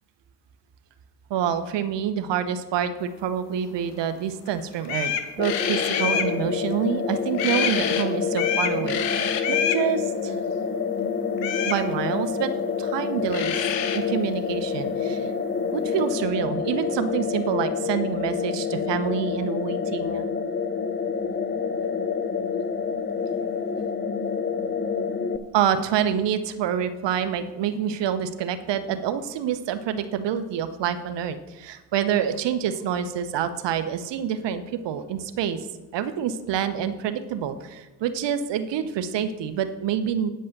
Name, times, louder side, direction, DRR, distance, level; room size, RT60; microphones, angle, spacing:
voice 1, 1.3-10.3 11.6-13.7 13.9-15.3 15.7-20.2 25.5-35.6 35.9-40.3, right 8 dB, 60° right, 10 dB, 1.1 m, -27 dB
sound 1, 4.5-4.6 4.8-6.3 7.3-8.0 8.3-9.8 11.4-11.8 13.0-13.1 13.3-14.0, left 8 dB, 90° left, 1.0 m, -27 dB
sound 2, 5.4-25.4, left 6 dB, 20° left, 0.8 m, -28 dB
8.9 x 5.4 x 8.0 m, 1.1 s
hypercardioid pair, 60°, 49 cm